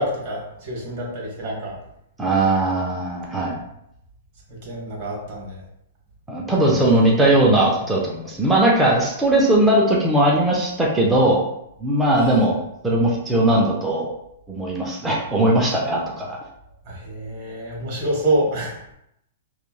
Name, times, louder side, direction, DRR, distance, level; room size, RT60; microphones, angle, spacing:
voice 1, 0.0-1.8 4.6-5.6 6.6-6.9 12.2-12.4 16.8-19.0, right 1 dB, 45° right, -2 dB, 1.1 m, -27 dB
voice 2, 2.2-3.6 6.3-11.5 11.8-12.6 12.8-14.1 14.5-16.4, right 1 dB, 10° right, -3 dB, 0.5 m, -19 dB
3.0 x 2.2 x 2.3 m, 0.79 s
hypercardioid pair, 140°, 0 cm